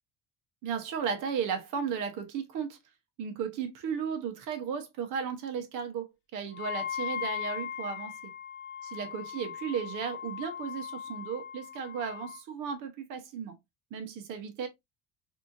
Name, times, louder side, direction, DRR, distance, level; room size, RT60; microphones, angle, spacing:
voice 1, 0.6-2.8 3.2-8.1 8.9-13.6 13.9-14.7, right 7 dB, 50° right, 1.1 m, -35 dB
Wind instrument woodwind instrument, 6.5-12.4, left 8 dB, 30° left, 0.8 m, -38 dB
4.3 x 2.8 x 2.6 m
cardioid pair, 170°, 38 cm